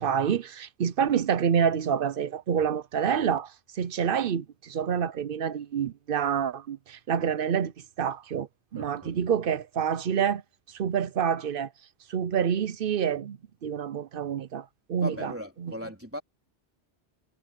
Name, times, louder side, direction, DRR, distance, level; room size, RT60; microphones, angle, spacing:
voice 1, 0.0-7.7 8.0-10.4 10.7-11.7 12.1-15.3 15.6-15.7, right 8 dB, 60° right, 0.8 m, -27 dB
voice 2, 8.7-9.2 15.0-16.2, left 1 dB, 10° right, 3.5 m, -38 dB
omnidirectional pair, 1.2 m